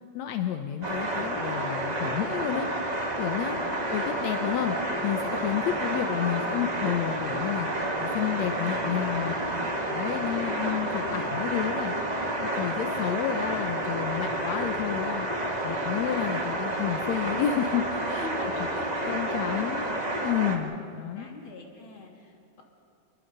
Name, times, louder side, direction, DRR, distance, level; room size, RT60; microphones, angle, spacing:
voice 1, 0.1-2.7 3.2-3.6 3.9-4.8 5.0-9.4 9.9-11.9 12.4-15.3 15.6-18.3 19.1-19.8 20.2-21.3, left 10 dB, 75° left, 6 dB, 1.6 m, -30 dB
sound 1, 0.8-20.6, right 1 dB, 30° right, 0.7 m, -30 dB
voice 2, 3.6-3.9 9.3-10.5 13.5-13.8 18.1-20.0 21.1-22.6, left 2 dB, 35° left, 0 dB, 3.4 m, -44 dB
28.0 x 22.0 x 5.5 m, 2.3 s
omnidirectional pair, 4.2 m